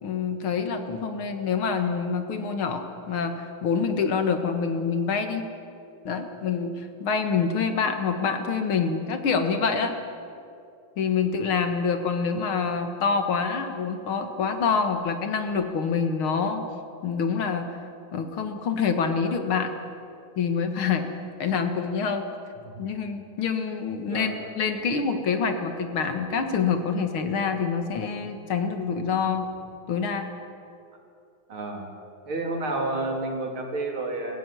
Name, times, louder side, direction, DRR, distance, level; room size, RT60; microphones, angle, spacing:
voice 1, 0.0-5.5 6.0-9.9 11.0-16.6 17.0-17.8 18.1-19.7 20.4-21.1 21.4-22.3 22.8-29.5 29.9-30.3, left 5 dB, 85° left, 6 dB, 2.5 m, -26 dB
voice 2, 24.1-24.4 31.5-31.9 32.3-34.4, right 2 dB, 90° right, 1 dB, 3.8 m, -30 dB
21.5 x 15.5 x 9.9 m, 2.6 s
omnidirectional pair, 2.2 m